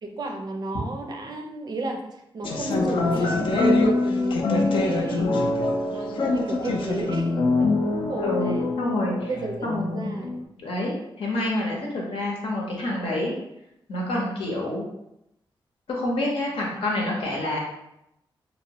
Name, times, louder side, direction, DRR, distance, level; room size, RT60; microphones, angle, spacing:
voice 1, 0.0-5.3 5.9-8.7 9.3-10.3, right 2 dB, 50° right, 3 dB, 0.4 m, -33 dB
sound 1, 2.4-10.4, left 2 dB, 70° left, 0.4 m, -24 dB
voice 2, 8.2-9.3 9.6-10.1 10.6-13.3 13.9-14.9 15.9-17.6, left 1 dB, 90° left, -2 dB, 0.8 m, -27 dB
2.9 x 2.1 x 2.8 m, 0.82 s
wide cardioid pair, 115°, 9 cm